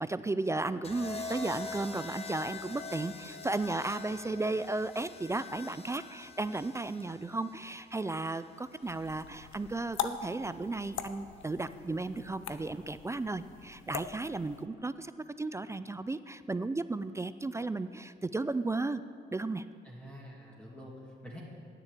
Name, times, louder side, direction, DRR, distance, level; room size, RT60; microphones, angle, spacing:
voice 1, 0.0-15.1 15.4-19.0 19.3-19.6, right 2 dB, 15° right, 13 dB, 0.3 m, -34 dB
sound 1, 0.8-9.0 10.2-10.6, left 4 dB, 30° left, 1.2 m, -45 dB
sound 2, 8.8-14.7, left 9 dB, 80° left, 0.7 m, -42 dB
voice 2, 19.8-21.4, equal, 5° left, -5 dB, 2.0 m, -47 dB
9.7 x 7.1 x 8.6 m, 2.2 s
cardioid pair, 90°, 20 cm